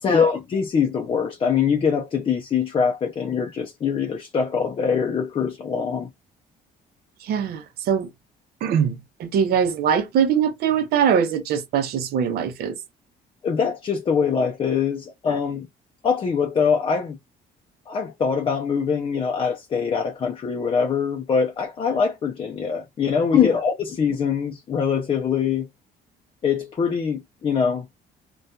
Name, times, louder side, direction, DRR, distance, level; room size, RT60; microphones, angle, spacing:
voice 1, 0.0-6.1 13.4-15.7 16.0-17.2 17.9-25.7 26.4-27.9, left 6 dB, 30° left, 0.4 m, -23 dB
voice 2, 7.2-8.1 8.6-8.9 9.2-12.7, right 7 dB, 70° right, 0.7 m, -22 dB
2.7 x 2.3 x 2.2 m
cardioid pair, 110°, 17 cm